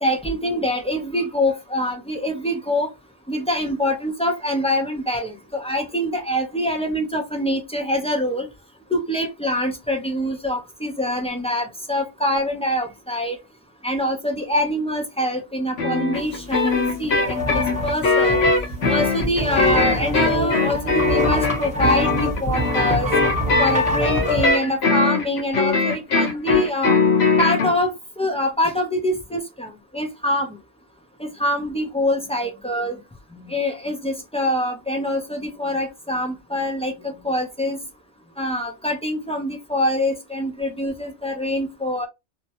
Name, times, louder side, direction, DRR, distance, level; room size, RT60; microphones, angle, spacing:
voice 1, 0.0-2.9 3.3-8.5 8.9-13.4 13.8-18.4 18.9-23.1 23.6-27.0 27.4-27.9 28.2-30.5 31.2-33.0 33.4-37.8 38.4-42.1, left 1 dB, 10° left, 0.3 m, -24 dB
sound 1, 15.8-27.7, left 3 dB, 65° left, 1.0 m, -21 dB
sound 2, 16.7-16.8 17.0-24.6, left 1 dB, 5° right, 0.9 m, -24 dB
2.8 x 2.2 x 2.8 m
omnidirectional pair, 1.2 m